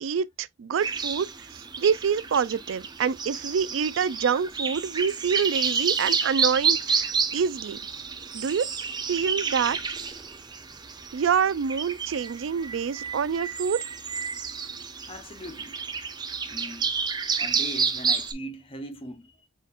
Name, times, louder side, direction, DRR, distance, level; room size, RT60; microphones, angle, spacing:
voice 1, 0.0-1.3 1.5-7.8 8.3-8.7 9.1-9.8 11.1-13.8, right 6 dB, 75° right, 0.4 m, -26 dB
sound 1, 0.8-18.3, right 5 dB, 20° right, 0.6 m, -30 dB
sound 2, 6.3-11.5, equal, ahead, 1.8 m, -56 dB
voice 2, 15.1-15.8 16.5-16.9 17.4-19.5, equal, 30° left, 0.7 m, -40 dB
5.0 x 4.1 x 2.4 m
head